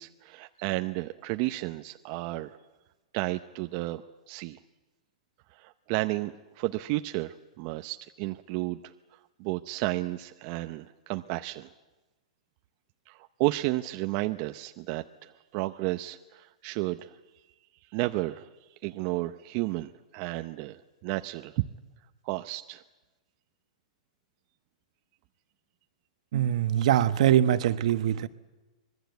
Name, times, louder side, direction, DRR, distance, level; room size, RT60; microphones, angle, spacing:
voice 1, 0.0-2.6 3.1-4.0 4.3-4.6 5.6-8.9 9.4-11.7 13.1-17.1 17.9-18.5 18.8-21.6 22.2-22.8, right 19 dB, 40° right, 8 dB, 0.7 m, -32 dB
voice 2, 26.3-28.3, right 11 dB, 60° right, 12 dB, 1.2 m, -23 dB
25.5 x 20.5 x 8.2 m, 1.2 s
hypercardioid pair, 145°, 4 cm